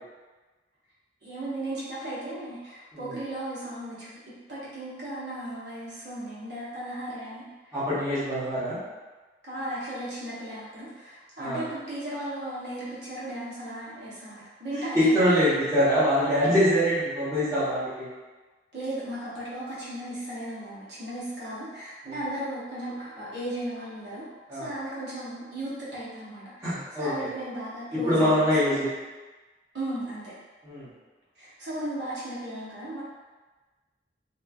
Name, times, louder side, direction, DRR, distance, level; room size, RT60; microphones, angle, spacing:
voice 1, 1.2-4.2 4.5-7.4 9.4-15.2 18.7-28.7 29.7-30.3 31.4-33.0, right 1 dB, 75° right, -9 dB, 0.9 m, -36 dB
voice 2, 7.7-8.8 11.4-11.6 14.9-18.1 24.5-24.7 26.6-27.3 27.9-28.9 30.6-30.9, equal, 20° right, -12 dB, 0.9 m, -24 dB
3.0 x 2.1 x 2.3 m, 1.3 s
head